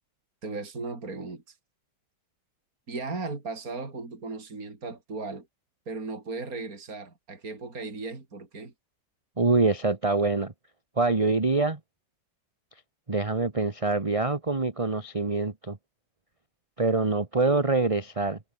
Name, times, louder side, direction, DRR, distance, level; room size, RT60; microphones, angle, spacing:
voice 1, 0.4-1.6 2.9-5.5 5.9-8.7, right 3 dB, 45° right, 4.3 m, -36 dB
voice 2, 9.4-10.5 11.0-11.8 13.1-15.8 16.8-18.4, right 3 dB, 20° right, 1.5 m, -25 dB
omnidirectional pair, 2.1 m